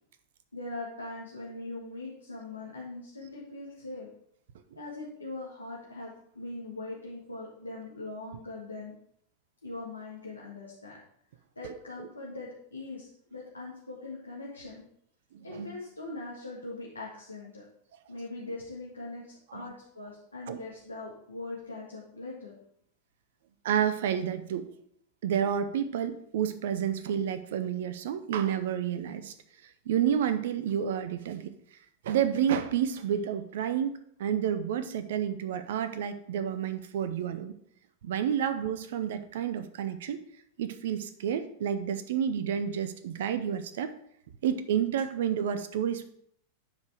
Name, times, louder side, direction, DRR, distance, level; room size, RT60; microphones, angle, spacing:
voice 1, 0.5-4.1 4.8-8.9 9.6-11.0 11.6-14.8 15.4-17.6 18.1-19.3 19.5-22.6, left 2 dB, 80° left, -6 dB, 1.8 m, -41 dB
voice 2, 11.6-12.1 15.3-15.7 19.5-19.7 20.5-20.6 23.6-24.7 25.2-29.3 29.6-31.5 32.0-37.5 38.0-40.2 40.6-43.9 44.4-46.1, right 9 dB, 55° right, 11 dB, 0.6 m, -30 dB
9.3 x 5.1 x 4.8 m, 0.68 s
figure-of-eight pair, 90°, 0 cm